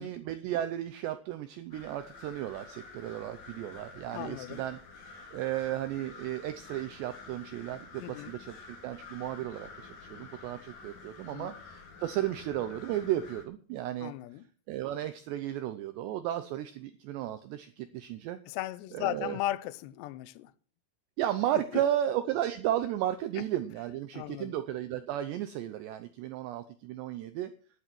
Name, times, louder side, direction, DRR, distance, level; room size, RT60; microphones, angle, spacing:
voice 1, 0.0-4.8 5.1-14.1 14.7-18.4 18.9-19.4 21.2-27.5, right 12 dB, 80° right, 2.5 m, -34 dB
sound 1, 1.7-13.5, left 4 dB, 45° left, 3.0 m, -49 dB
voice 2, 4.1-4.6 8.0-8.4 11.3-11.5 14.0-14.5 18.5-20.5 21.7-21.8 23.4-23.5 24.1-24.5, left 14 dB, 80° left, 2.5 m, -36 dB
11.0 x 10.0 x 6.1 m
omnidirectional pair, 5.9 m